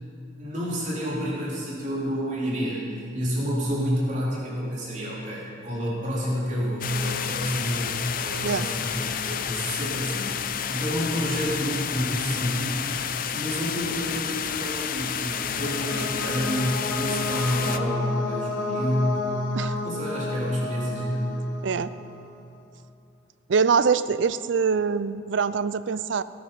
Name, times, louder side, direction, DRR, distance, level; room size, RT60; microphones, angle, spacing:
voice 1, 0.4-2.8 3.1-12.8 13.3-19.3 19.8-21.3, equal, 40° right, -6 dB, 3.7 m, -29 dB
sound 1, 6.8-17.8, left 8 dB, 45° left, 0.5 m, -30 dB
sound 2, 14.7-22.3, left 2 dB, 70° left, 1.2 m, -32 dB
voice 2, 23.5-26.2, right 5 dB, 70° right, 15 dB, 0.4 m, -24 dB
18.0 x 9.5 x 5.6 m, 2.6 s
head